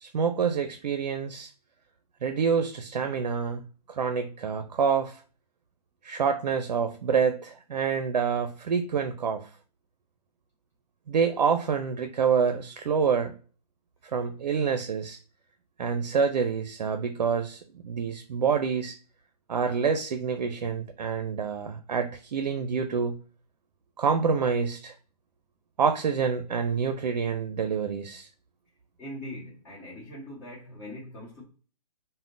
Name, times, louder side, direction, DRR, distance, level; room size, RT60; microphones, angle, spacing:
voice 1, 0.0-1.5 2.2-3.6 3.9-5.2 6.0-9.5 11.1-13.3 14.1-15.2 15.8-18.9 19.5-23.2 24.0-24.9 25.8-28.3, right 6 dB, 80° right, 0.5 m, -27 dB
voice 2, 29.0-31.4, left 1 dB, 15° left, 1.0 m, -41 dB
3.4 x 2.1 x 2.5 m
hypercardioid pair, 145°, 21 cm